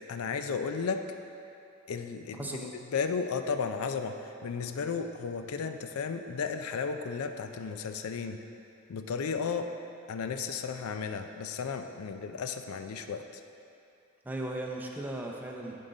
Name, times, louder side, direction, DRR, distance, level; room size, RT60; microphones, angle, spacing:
voice 1, 0.1-1.0 1.9-8.4 8.9-9.7 10.1-13.2, left 5 dB, 90° left, 7 dB, 0.4 m, -34 dB
voice 2, 2.4-2.7 14.2-15.7, right 1 dB, 10° right, -1 dB, 0.5 m, -36 dB
10.5 x 3.8 x 3.9 m, 2.6 s
head